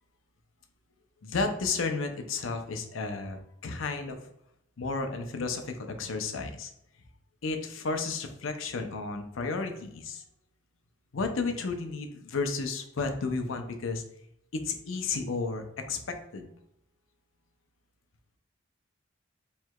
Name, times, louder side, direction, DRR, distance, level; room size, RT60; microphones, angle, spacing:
voice 1, 1.2-4.3 4.8-6.7 7.4-10.2 11.1-14.0 14.5-16.5, left 4 dB, 90° left, 5 dB, 0.6 m, -32 dB
4.6 x 3.2 x 2.3 m, 0.78 s
head